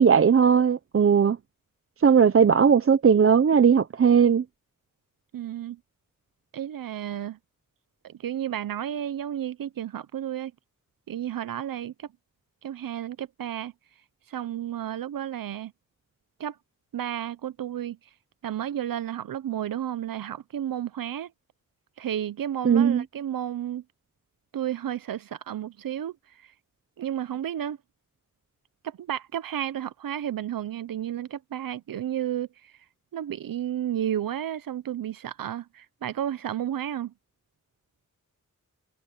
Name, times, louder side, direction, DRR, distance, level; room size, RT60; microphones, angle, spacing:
voice 1, 0.0-1.4 2.0-4.4 22.6-23.0, right 7 dB, 40° right, 0.6 m, -18 dB
voice 2, 5.3-5.8 6.5-7.4 8.0-10.5 11.1-12.1 12.6-13.7 14.3-15.7 16.4-16.6 16.9-18.0 18.4-21.3 22.0-23.8 24.5-26.5 27.0-27.8 28.8-32.8 33.1-37.1, right 10 dB, 85° right, 0.6 m, -32 dB
wide cardioid pair, 135°, 33 cm